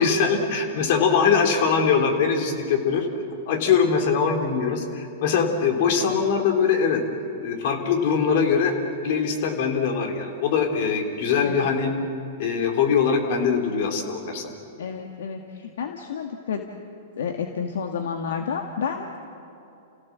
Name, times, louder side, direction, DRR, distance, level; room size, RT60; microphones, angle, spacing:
voice 1, 0.0-3.1 3.5-7.0 7.4-8.8 9.0-11.9 12.4-14.5, left 6 dB, 60° left, 4 dB, 3.5 m, -22 dB
voice 2, 14.8-16.6 17.2-19.2, left 6 dB, 75° left, 4 dB, 1.6 m, -30 dB
29.5 x 16.5 x 7.5 m, 2.8 s
hypercardioid pair, 125°, 0 cm